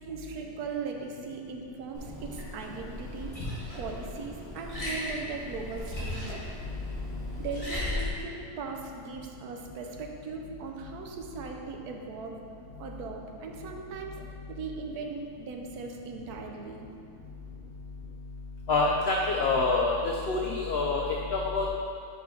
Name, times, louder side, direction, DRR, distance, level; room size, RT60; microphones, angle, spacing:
voice 1, 0.0-3.4 3.7-6.4 7.4-12.4 12.8-14.1 14.5-16.9, right 4 dB, 75° right, 2 dB, 1.1 m, -39 dB
Liquid, 1.9-8.1, left 1 dB, 20° left, 1.5 m, -37 dB
voice 2, 18.7-21.7, left 3 dB, 85° left, -1 dB, 0.5 m, -26 dB
5.4 x 5.2 x 4.6 m, 2.6 s
omnidirectional pair, 1.7 m